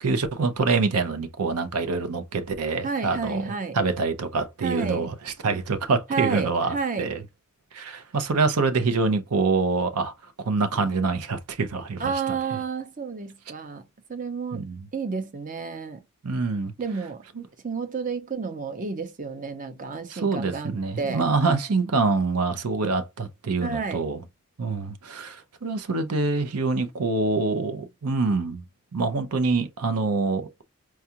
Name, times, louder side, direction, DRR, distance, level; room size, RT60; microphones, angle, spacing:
voice 1, 0.0-3.4 3.7-7.2 7.7-10.1 10.4-12.4 14.5-14.9 16.2-16.7 17.4-17.5 20.1-24.2 24.6-28.6 28.9-30.5, right 3 dB, 85° right, 0.6 m, -25 dB
voice 2, 2.8-3.8 4.6-5.1 6.1-7.1 12.0-13.8 14.1-14.7 14.9-16.0 16.8-17.2 17.6-21.2 23.6-24.0, right 5 dB, 35° right, 0.6 m, -30 dB
4.6 x 2.4 x 2.8 m
head